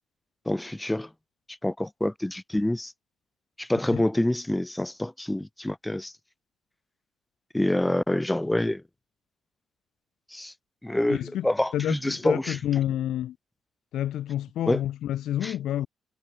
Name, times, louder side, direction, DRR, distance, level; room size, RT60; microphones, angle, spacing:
voice 1, 0.4-1.1 1.6-2.9 3.6-6.1 7.5-8.8 10.3-10.5 10.8-12.6 14.7-14.8 15.4-15.5, left 1 dB, 10° left, 1.5 m, -26 dB
voice 2, 11.1-11.5 11.7-13.4 13.9-15.9, left 12 dB, 75° left, 0.6 m, -29 dB
cardioid pair, 90°, 0 cm